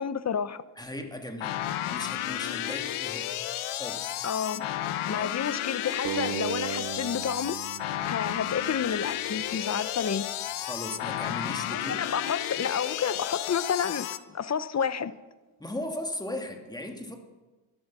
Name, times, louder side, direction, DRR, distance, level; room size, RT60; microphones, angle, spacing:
voice 1, 0.0-0.6 4.2-4.7 5.1-7.6 8.0-10.3 11.7-15.2, left 7 dB, 35° left, 0.8 m, -30 dB
voice 2, 0.8-1.6 1.9-3.3 3.7-4.2 5.1-5.3 10.6-12.0 15.6-17.2, left 1 dB, 10° left, 2.2 m, -37 dB
sound 1, 1.4-14.2, left 12 dB, 80° left, 1.0 m, -32 dB
sound 2, 6.0-9.2, right 11 dB, 50° right, 0.6 m, -37 dB
15.0 x 12.5 x 6.1 m
cardioid pair, 95°, 48 cm